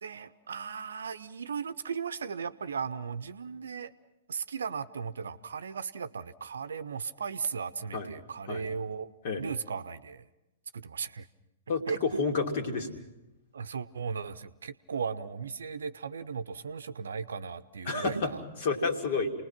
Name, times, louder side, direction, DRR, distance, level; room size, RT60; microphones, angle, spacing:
voice 1, 0.0-3.9 4.3-10.2 10.7-11.3 11.9-12.0 13.5-18.4, right 6 dB, 65° right, 14 dB, 0.8 m, -36 dB
voice 2, 11.7-13.0 17.9-18.3 18.6-19.3, left 4 dB, 50° left, 4 dB, 2.8 m, -30 dB
29.5 x 20.5 x 6.0 m, 0.96 s
figure-of-eight pair, 110°, 0 cm